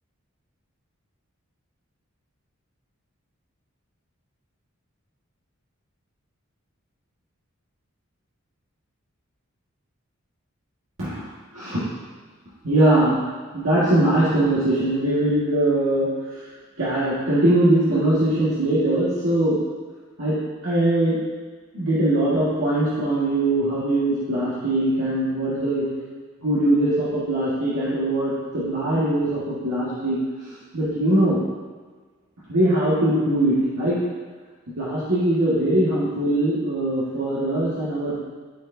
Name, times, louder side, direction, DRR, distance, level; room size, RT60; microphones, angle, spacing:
voice 1, 11.5-11.8 12.6-13.2 13.5-16.1 16.3-16.4 16.8-19.6 20.2-20.4 20.6-21.2 21.7-25.8 26.4-31.4 32.5-34.1 34.8-38.3, right 1 dB, 80° right, -11 dB, 1.8 m, -21 dB
12.5 x 4.6 x 2.7 m, 1.4 s
head